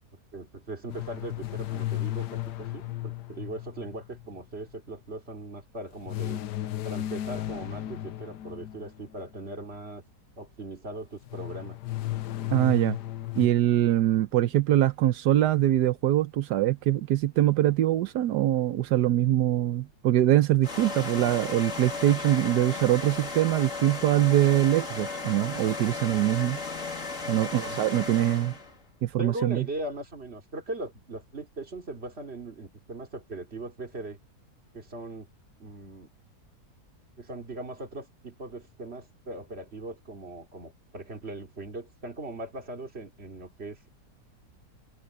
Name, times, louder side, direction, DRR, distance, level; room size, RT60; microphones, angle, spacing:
voice 1, 0.3-6.4 6.8-10.0 10.4-11.8 27.2-27.7 29.2-34.2 34.7-35.3 35.6-36.1 37.2-43.9, right 2 dB, 40° right, 3.1 m, -39 dB
sound 1, 0.9-4.4 6.1-9.2 11.3-13.5, left 14 dB, 85° left, 1.4 m, -34 dB
voice 2, 12.5-13.0 13.3-26.6 27.3-28.5 29.0-29.6, right 13 dB, 85° right, 1.3 m, -23 dB
sound 2, 20.6-28.7, left 3 dB, 50° left, 3.2 m, -35 dB
omnidirectional pair, 1.7 m